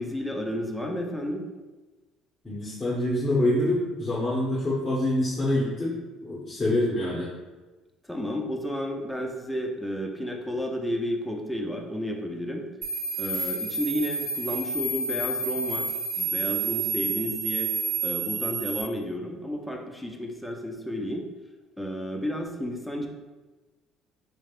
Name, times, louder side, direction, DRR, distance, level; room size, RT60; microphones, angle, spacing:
voice 1, 0.0-1.5 8.0-12.7 13.2-15.9 16.2-17.7 18.0-21.3 21.8-23.1, equal, ahead, 1 dB, 0.6 m, -32 dB
voice 2, 2.4-6.0 6.2-7.3, left 1 dB, 20° left, -8 dB, 1.1 m, -26 dB
sound 1, 12.8-18.8, right 3 dB, 40° right, 0.8 m, -29 dB
3.7 x 3.2 x 2.4 m, 1.2 s
supercardioid pair, 75°, 0 cm